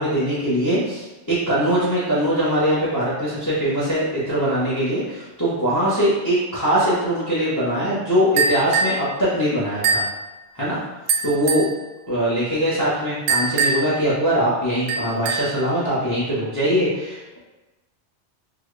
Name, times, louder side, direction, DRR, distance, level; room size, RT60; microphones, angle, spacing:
voice 1, 0.0-10.0 10.5-10.8 11.2-11.7 12.1-17.4, equal, 20° left, -8 dB, 0.7 m, -22 dB
sound 1, 8.4-9.0 9.8-10.2 11.1-11.7 13.3-14.0 14.9-15.6, right 4 dB, 70° right, 0.8 m, -22 dB
3.8 x 2.2 x 3.1 m, 1.1 s
omnidirectional pair, 1.2 m